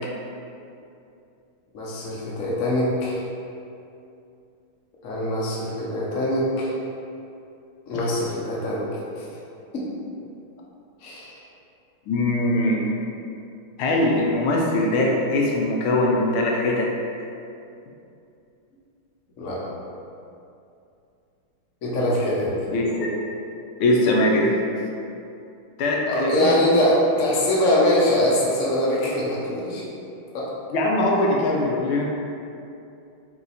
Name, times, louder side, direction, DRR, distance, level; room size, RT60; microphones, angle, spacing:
voice 1, 1.7-3.2 5.0-6.8 7.9-8.8 9.2-9.4 9.7-9.8 11.0-11.4 19.4-19.6 21.8-22.7 26.1-29.9 30.3-30.5, left 1 dB, 60° left, -6 dB, 0.8 m, -23 dB
voice 2, 12.1-12.8 13.8-16.9 22.7-23.1 23.8-24.5 25.8-26.6 30.7-32.0, left 1 dB, 80° left, -2 dB, 1.4 m, -21 dB
4.2 x 2.7 x 3.9 m, 2.6 s
omnidirectional pair, 2.4 m